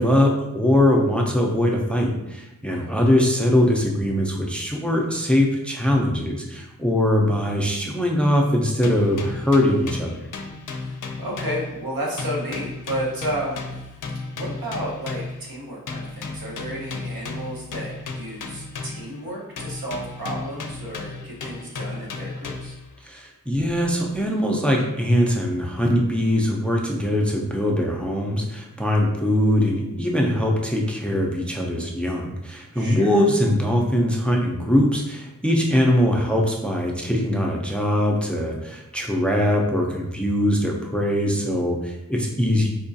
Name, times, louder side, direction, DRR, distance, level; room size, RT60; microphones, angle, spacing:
voice 1, 0.0-10.3 23.0-42.7, left 1 dB, 5° left, 0 dB, 0.4 m, -21 dB
voice 2, 2.7-3.1 10.7-13.9 14.3-22.8 32.7-33.2, right 1 dB, 90° right, -3 dB, 1.0 m, -32 dB
sound 1, 8.8-11.9 12.2-15.5 15.9-19.2 19.6-22.9, left 3 dB, 65° left, 0.5 m, -34 dB
4.4 x 2.3 x 2.6 m, 0.93 s
wide cardioid pair, 100°, 34 cm